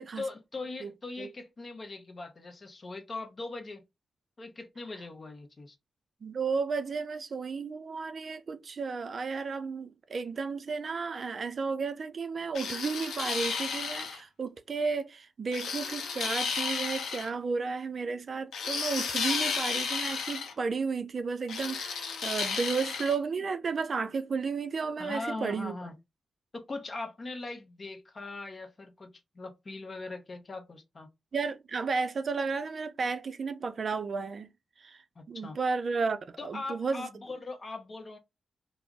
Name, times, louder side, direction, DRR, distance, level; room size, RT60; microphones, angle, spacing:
voice 1, 0.0-3.8 4.4-5.8 25.0-25.9 26.5-31.1 35.2-35.6 36.4-38.2, left 3 dB, 45° left, 0.7 m, -40 dB
voice 2, 6.2-25.7 31.3-34.5 34.8-37.1, right 4 dB, 60° right, 0.4 m, -33 dB
sound 1, 12.6-14.2 15.5-17.3 18.5-20.5 21.5-23.2, left 5 dB, 80° left, 0.5 m, -33 dB
2.3 x 2.0 x 3.5 m
supercardioid pair, 40°, 0 cm